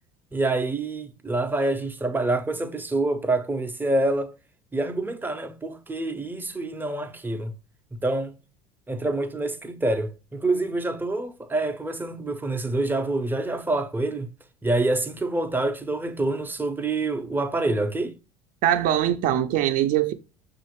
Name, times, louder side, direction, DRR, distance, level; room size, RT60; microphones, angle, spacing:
voice 1, 0.3-4.3 4.7-7.5 8.0-8.3 8.9-14.3 14.6-18.1, right 2 dB, 10° right, 0.6 m, -26 dB
voice 2, 18.6-20.1, right 11 dB, 55° right, 0.6 m, -22 dB
5.5 x 2.5 x 3.0 m
hypercardioid pair, 80°, 17 cm